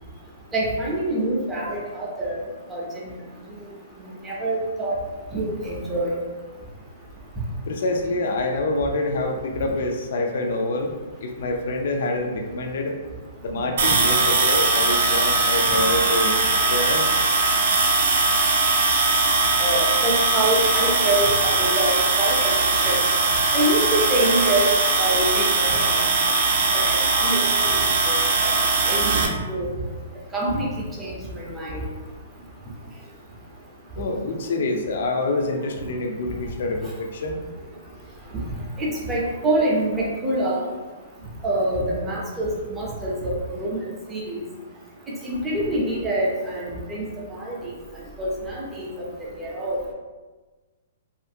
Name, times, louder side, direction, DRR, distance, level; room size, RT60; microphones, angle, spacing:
voice 1, 0.5-2.4 2.7-2.8 4.2-4.9 5.3-6.2 19.6-23.0 23.5-24.7 25.0-26.0 26.7-27.8 28.1-28.6 28.8-29.7 30.3-30.7 31.0-31.8 38.8-40.6 41.4-43.8 44.1-44.4 45.2-47.1 47.3-47.6 48.2-48.9 49.4-49.9, right 1 dB, 10° right, -5 dB, 0.5 m, -25 dB
voice 2, 7.7-10.9 11.2-13.0 13.4-16.3 16.7-17.1 34.0-37.4, left 2 dB, 60° left, 3 dB, 0.4 m, -26 dB
sound 1, 13.8-29.3, right 3 dB, 70° right, 0.5 m, -20 dB
2.6 x 2.4 x 2.6 m, 1.3 s
hypercardioid pair, 165°, 0 cm